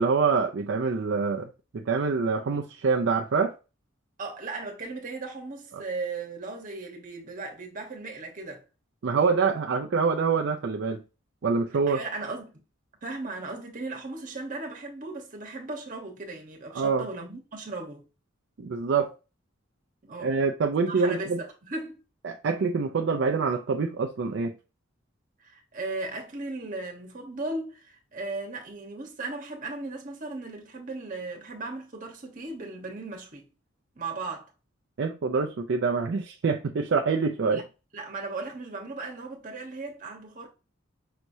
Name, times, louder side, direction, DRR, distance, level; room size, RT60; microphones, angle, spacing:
voice 1, 0.0-3.5 5.7-5.8 9.0-11.0 11.4-12.0 16.7-17.0 18.6-19.1 20.2-21.4 22.2-24.6 35.0-37.6, right 5 dB, 60° right, 0.4 m, -25 dB
voice 2, 4.2-8.6 11.9-12.6 13.0-18.0 20.0-20.4 20.8-22.0 25.4-33.5 34.0-34.5 37.5-37.7 37.9-40.5, right 3 dB, 40° right, 1.1 m, -37 dB
5.7 x 3.0 x 2.7 m
head